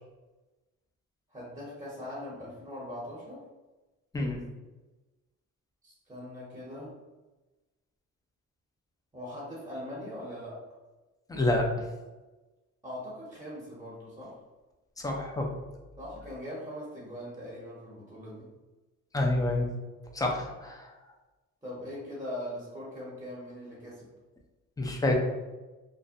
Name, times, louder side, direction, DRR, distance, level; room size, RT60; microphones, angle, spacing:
voice 1, 1.3-3.4 5.8-6.9 9.1-10.6 12.8-14.4 16.0-18.5 21.6-24.1, left 1 dB, 10° right, -6 dB, 0.8 m, -41 dB
voice 2, 11.3-11.7 15.0-15.5 19.1-19.7 20.1-20.9 24.8-25.1, left 2 dB, 10° left, 1 dB, 0.4 m, -28 dB
2.6 x 2.1 x 2.5 m, 1.1 s
cardioid pair, 90°, 30 cm